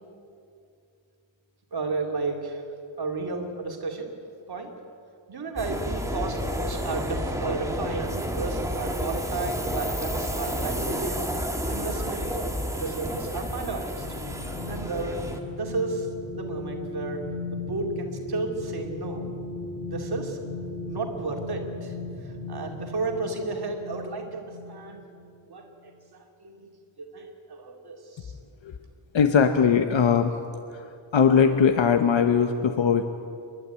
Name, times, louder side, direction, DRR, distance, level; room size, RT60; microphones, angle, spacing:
voice 1, 1.7-2.7 3.0-4.1 4.5-4.7 5.3-11.2 11.7-12.3 12.8-14.1 14.7-15.2 15.5-16.1 16.3-17.2 17.5-19.3 19.9-20.4 20.9-21.9 22.2-25.1 25.5-26.7 27.0-28.3, right 3 dB, 50° right, 2 dB, 2.7 m, -33 dB
sound 1, 5.6-15.4, equal, 5° right, 1.6 m, -30 dB
sound 2, 13.0-25.3 25.7-25.9, left 2 dB, 25° left, 2.0 m, -37 dB
voice 2, 29.1-30.3 30.7-30.8 31.1-33.1, left 6 dB, 70° left, 7 dB, 1.1 m, -20 dB
28.0 x 12.0 x 9.4 m, 2.4 s
wide cardioid pair, 175°, 48 cm